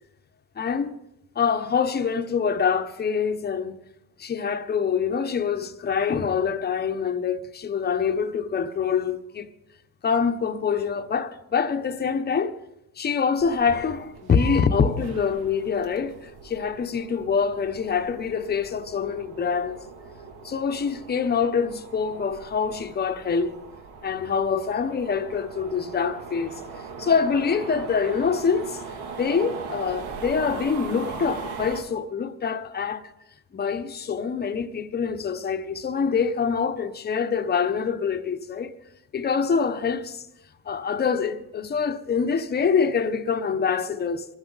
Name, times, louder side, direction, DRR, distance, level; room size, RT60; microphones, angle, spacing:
voice 1, 0.6-0.9 1.3-3.8 4.2-9.5 10.0-12.5 13.0-19.8 20.4-23.5 24.0-26.6 27.0-28.8 29.2-33.1 33.5-38.8 39.1-40.2 40.6-44.3, left 6 dB, 25° left, 0.9 m, -25 dB
sound 1, 13.4-31.8, right 5 dB, 75° right, 2.6 m, -40 dB
22.5 x 13.5 x 4.0 m
cardioid pair, 120°, 38 cm